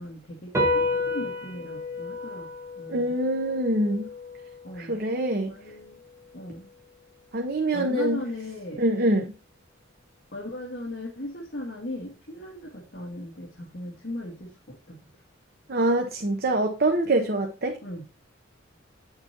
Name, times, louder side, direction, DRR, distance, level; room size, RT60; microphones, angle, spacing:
voice 1, 0.0-2.5 2.8-3.1 4.6-5.0 5.5-6.0 6.3-6.7 7.7-8.8 10.3-15.0 17.8-18.0, left 1 dB, 55° left, -3 dB, 1.9 m, -37 dB
sound 1, 0.5-7.3, left 2 dB, 15° right, 1.5 m, -32 dB
voice 2, 2.9-4.1 4.7-5.5 7.3-8.2 8.8-9.3 15.7-17.8, right 1 dB, 50° right, 3 dB, 0.9 m, -24 dB
9.5 x 6.8 x 2.9 m, 0.32 s
head